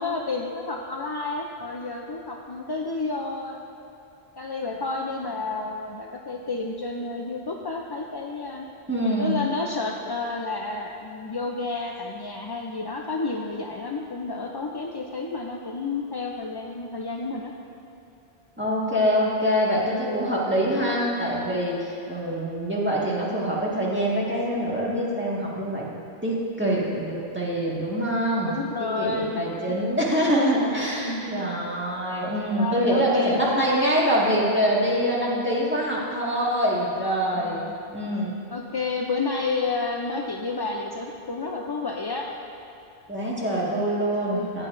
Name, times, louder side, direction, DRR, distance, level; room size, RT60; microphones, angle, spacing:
voice 1, 0.0-3.6 4.4-8.7 9.2-17.5 19.9-20.3 28.4-29.8 31.0-31.4 32.5-34.1 35.2-35.6 37.3-37.7 38.5-42.3 44.3-44.7, left 3 dB, 40° left, 0 dB, 0.3 m, -31 dB
voice 2, 8.9-9.4 18.6-25.9 26.2-28.5 29.0-37.6 37.9-38.3 43.1-44.7, equal, 10° right, -7 dB, 1.7 m, -25 dB
15.0 x 9.0 x 2.6 m, 2.9 s
omnidirectional pair, 1.1 m